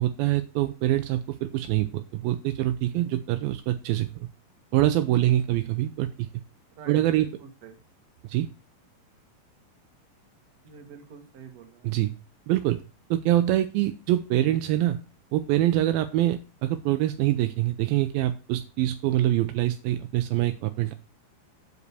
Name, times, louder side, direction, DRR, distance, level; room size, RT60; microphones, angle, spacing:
voice 1, 0.0-4.1 4.7-6.3 6.9-7.3 8.2-8.5 11.8-12.1 12.5-12.8 13.1-15.0 15.3-20.9, right 14 dB, 80° right, 9 dB, 2.4 m, -25 dB
voice 2, 6.7-7.8 10.6-12.0, right 6 dB, 55° right, 3 dB, 2.4 m, -46 dB
8.1 x 5.2 x 6.8 m, 0.34 s
omnidirectional pair, 4.3 m